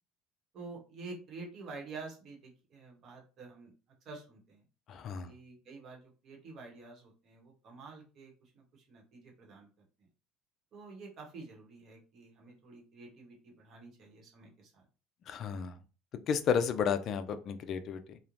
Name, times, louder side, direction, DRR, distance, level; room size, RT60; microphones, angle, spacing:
voice 1, 0.5-3.7 4.0-4.7 5.2-10.1 10.7-14.9, right 3 dB, 40° right, 0 dB, 0.9 m, -49 dB
voice 2, 4.9-5.3 15.3-15.8 16.3-18.2, left 7 dB, 40° left, 10 dB, 0.3 m, -32 dB
3.0 x 2.0 x 2.5 m, 0.34 s
cardioid pair, 150°, 0 cm